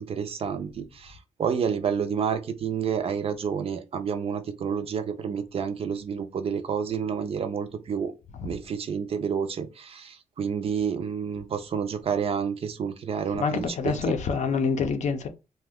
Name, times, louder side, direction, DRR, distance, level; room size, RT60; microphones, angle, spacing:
voice 1, 0.0-8.1 8.4-14.0, right 7 dB, 45° right, 0.4 m, -29 dB
voice 2, 13.3-15.3, left 5 dB, 60° left, 0.5 m, -26 dB
2.7 x 2.1 x 3.5 m
wide cardioid pair, 155°, 14 cm